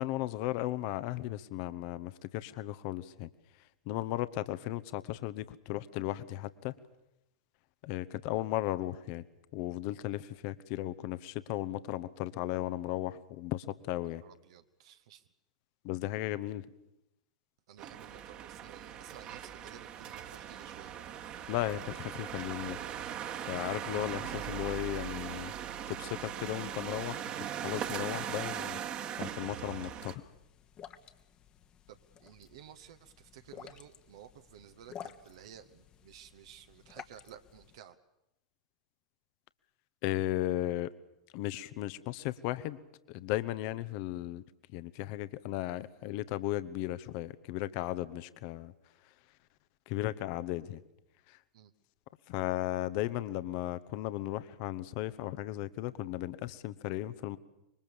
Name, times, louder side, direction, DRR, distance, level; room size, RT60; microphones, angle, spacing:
voice 1, 0.0-3.3 3.9-6.7 7.8-9.2 9.5-14.2 15.8-16.6 21.5-22.8 23.5-25.5 25.9-28.8 29.2-30.2 40.0-40.9 41.3-42.8 43.1-44.4 44.7-48.7 49.9-50.8 51.3-51.4 52.3-57.4, left 15 dB, 45° left, 14 dB, 1.0 m, -35 dB
voice 2, 14.0-15.3 17.7-20.9 31.9-38.0 51.5-51.7, right 10 dB, 55° right, 8 dB, 1.2 m, -54 dB
sound 1, 17.8-30.2, right 9 dB, 35° right, 1.7 m, -40 dB
sound 2, 29.3-37.8, left 9 dB, 30° left, 1.3 m, -53 dB
25.5 x 22.5 x 7.1 m, 0.87 s
figure-of-eight pair, 90°, 3 cm